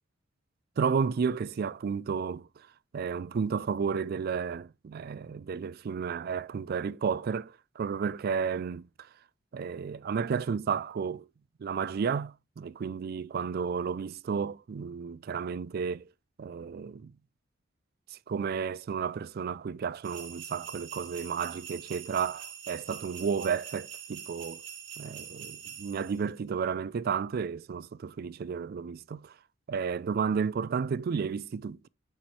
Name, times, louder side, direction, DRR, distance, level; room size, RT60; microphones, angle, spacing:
voice 1, 0.8-2.7 2.9-9.1 9.5-11.3 11.6-16.0 16.4-17.1 18.1-24.6 25.0-29.3 29.7-31.9, right 6 dB, 50° right, 0.3 m, -32 dB
sound 1, 20.0-26.2, right 9 dB, 85° right, 1.8 m, -44 dB
9.4 x 4.5 x 3.1 m
head